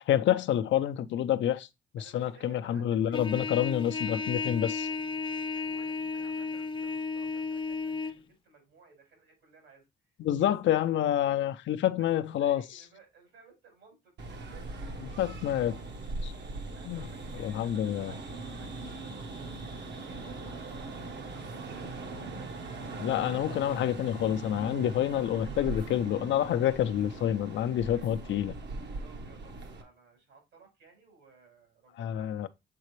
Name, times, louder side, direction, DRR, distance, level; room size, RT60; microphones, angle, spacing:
voice 1, 0.0-1.7 1.9-4.9 10.2-12.6 15.2-15.8 16.2-16.3 16.8-17.1 17.4-18.1 23.0-28.5 32.0-32.5, left 11 dB, 70° left, 0.6 m, -28 dB
voice 2, 2.0-3.9 5.5-10.8 12.0-15.1 16.8-22.5 25.1-25.4 27.9-28.1 29.0-32.5, right 4 dB, 80° right, 4.7 m, -58 dB
Trumpet, 3.1-8.2, left 4 dB, 25° left, 0.6 m, -34 dB
sound 1, 14.2-29.8, right 3 dB, 60° right, 1.1 m, -40 dB
7.6 x 4.1 x 3.1 m
cardioid pair, 90°, 20 cm